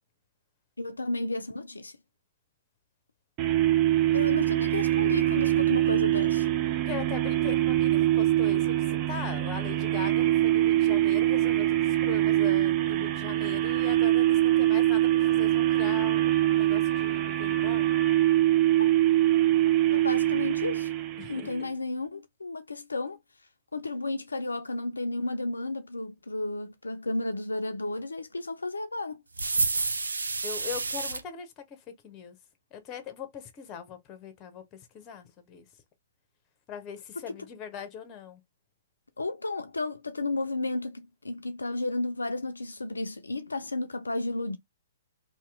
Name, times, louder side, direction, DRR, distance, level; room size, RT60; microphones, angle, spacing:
voice 1, 0.8-2.0 4.1-6.5 18.8-18.9 19.9-20.9 21.3-23.2 23.7-29.2 39.2-44.6, left 2 dB, 80° left, 0.4 m, -33 dB
sound 1, 3.4-21.7, right 14 dB, 30° right, 0.5 m, -24 dB
voice 2, 6.9-17.9 21.2-21.5 30.4-32.4 32.7-35.7 36.7-38.4, left 7 dB, 25° left, 0.9 m, -41 dB
sound 2, 29.4-31.2, right 3 dB, 75° right, 0.5 m, -29 dB
2.9 x 2.8 x 3.6 m
figure-of-eight pair, 120°, 0 cm